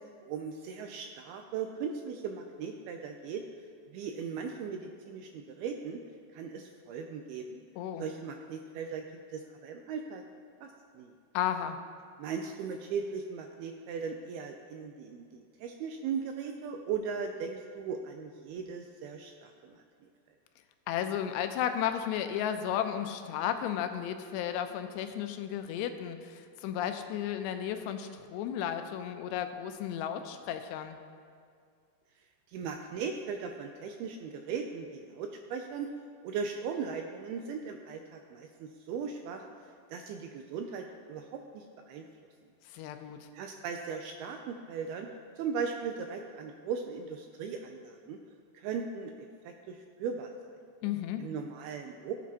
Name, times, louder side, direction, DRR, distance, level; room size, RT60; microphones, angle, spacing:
voice 1, 0.2-3.5 3.9-6.0 6.3-7.6 8.0-9.1 9.3-10.2 10.6-11.1 12.2-19.8 32.5-35.9 36.2-39.4 39.9-42.1 43.3-45.1 45.4-48.2 48.5-49.1 49.4-50.5 51.2-52.1, right 6 dB, 80° right, 4 dB, 2.3 m, -38 dB
voice 2, 11.3-11.8 20.9-31.0 42.7-43.3 50.8-51.3, left 9 dB, 85° left, 8 dB, 2.8 m, -34 dB
18.0 x 8.3 x 2.9 m, 2.2 s
omnidirectional pair, 4.9 m